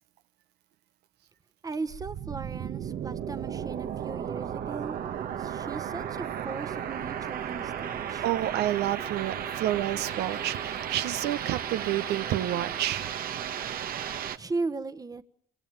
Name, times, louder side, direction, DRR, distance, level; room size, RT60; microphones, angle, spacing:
voice 1, 1.6-4.9 5.4-8.3 14.4-15.2, right 3 dB, 20° right, 1.3 m, -37 dB
sound 1, 1.9-14.4, right 9 dB, 60° right, 1.6 m, -34 dB
voice 2, 8.2-13.1, right 13 dB, 80° right, 1.3 m, -29 dB
26.0 x 25.5 x 7.5 m
cardioid pair, 110°, 17 cm